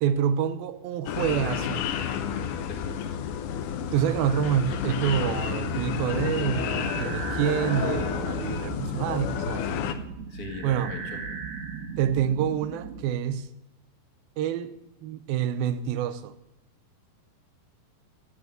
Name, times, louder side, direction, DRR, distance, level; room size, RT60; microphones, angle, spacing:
voice 1, 0.0-1.9 3.9-9.8 10.6-10.9 12.0-13.5 14.4-16.3, right 9 dB, 80° right, 2.6 m, -27 dB
sound 1, 1.1-9.9, left 8 dB, 70° left, 2.1 m, -30 dB
voice 2, 2.7-3.1 10.3-11.2, left 4 dB, 35° left, 1.6 m, -40 dB
sound 2, 5.6-13.0, right 5 dB, 60° right, 2.4 m, -37 dB
15.5 x 8.1 x 7.7 m
omnidirectional pair, 4.3 m